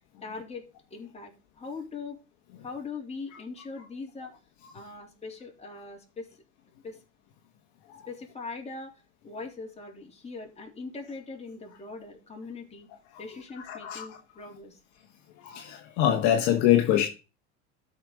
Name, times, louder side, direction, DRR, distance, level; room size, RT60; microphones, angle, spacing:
voice 1, 0.2-2.2 2.6-4.3 4.7-6.3 6.8-7.0 8.1-8.9 9.2-12.9 13.2-14.8, left 4 dB, 20° left, 3.6 m, -41 dB
voice 2, 13.7-14.0 15.4-17.1, left 11 dB, 55° left, 1.4 m, -24 dB
13.0 x 5.2 x 4.0 m
hypercardioid pair, 80°, 34 cm